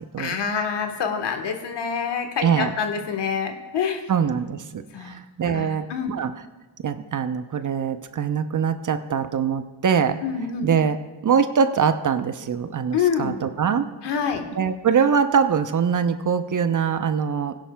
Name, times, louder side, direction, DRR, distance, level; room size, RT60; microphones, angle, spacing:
voice 1, 0.2-4.0 4.9-5.2 5.5-6.1 10.2-10.7 12.9-13.3 14.0-14.4, left 6 dB, 65° left, 5 dB, 1.4 m, -26 dB
voice 2, 2.4-2.8 4.1-6.3 6.8-10.2 10.6-11.0 11.2-13.9 14.6-17.5, right 7 dB, 45° right, 10 dB, 0.7 m, -23 dB
16.5 x 10.5 x 2.3 m, 1.2 s
supercardioid pair, 55°, 45 cm